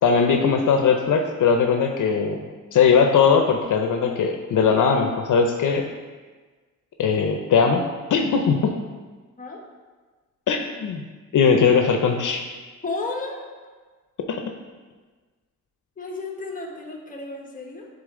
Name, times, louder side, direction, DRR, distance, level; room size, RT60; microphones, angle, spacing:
voice 1, 0.0-2.4 2.7-5.9 7.0-7.8 8.1-8.7 10.5-11.1 11.3-12.4 14.3-14.4, left 6 dB, 70° left, 4 dB, 0.6 m, -19 dB
voice 2, 12.8-13.5 16.0-17.9, left 3 dB, 25° left, 0 dB, 1.2 m, -32 dB
10.0 x 3.8 x 3.7 m, 1.4 s
wide cardioid pair, 110°, 32 cm